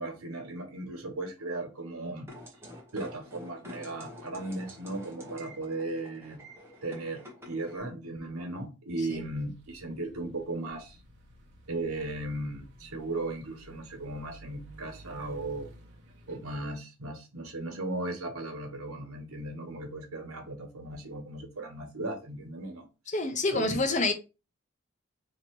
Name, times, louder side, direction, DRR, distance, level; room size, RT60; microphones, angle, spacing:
voice 1, 0.0-2.3 2.9-6.4 6.8-11.0 11.7-15.7 16.3-22.9 23.5-23.8, right 2 dB, 85° right, 1.2 m, -36 dB
sound 1, 2.3-7.8, left 1 dB, 10° right, 0.9 m, -48 dB
sound 2, 9.1-16.6, right 1 dB, 50° right, 0.9 m, -53 dB
voice 2, 23.1-24.1, left 2 dB, 35° left, 0.6 m, -27 dB
2.8 x 2.8 x 4.5 m
head